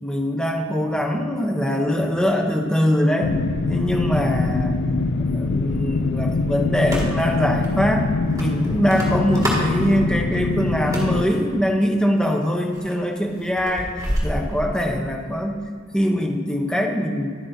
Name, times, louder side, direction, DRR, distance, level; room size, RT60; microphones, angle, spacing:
voice 1, 0.0-3.4 3.7-4.8 5.3-8.1 8.3-13.9 14.2-15.6 15.9-17.3, equal, 5° left, 2 dB, 0.8 m, -22 dB
sound 1, 3.2-11.2, left 3 dB, 60° left, 0.4 m, -23 dB
sound 2, 6.8-7.3 7.6-7.7 8.4-9.7 10.7-11.3 12.1-12.4 12.7-14.9, equal, 15° right, 2.1 m, -28 dB
11.5 x 9.5 x 2.7 m, 2.1 s
head